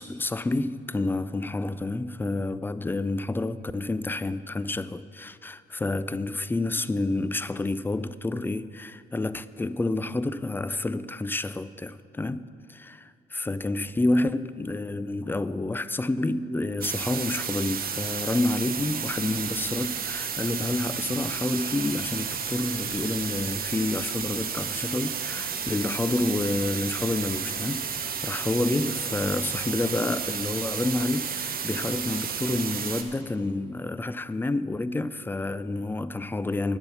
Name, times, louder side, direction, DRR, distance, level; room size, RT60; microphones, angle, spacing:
voice 1, 0.0-12.4 13.0-27.9 28.2-36.8, left 2 dB, 10° left, 0.3 m, -29 dB
sound 1, 16.8-33.0, right 7 dB, 50° right, 1.0 m, -32 dB
9.8 x 7.9 x 7.0 m
cardioid pair, 90°, 20 cm